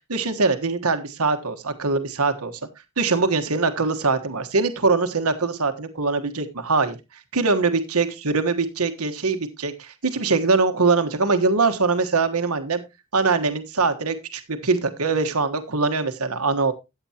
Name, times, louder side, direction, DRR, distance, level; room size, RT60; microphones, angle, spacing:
voice 1, 0.1-2.5 3.0-7.0 7.3-12.8 13.1-16.7, right 4 dB, 90° right, 8 dB, 1.4 m, -22 dB
14.0 x 8.9 x 2.9 m, 0.24 s
head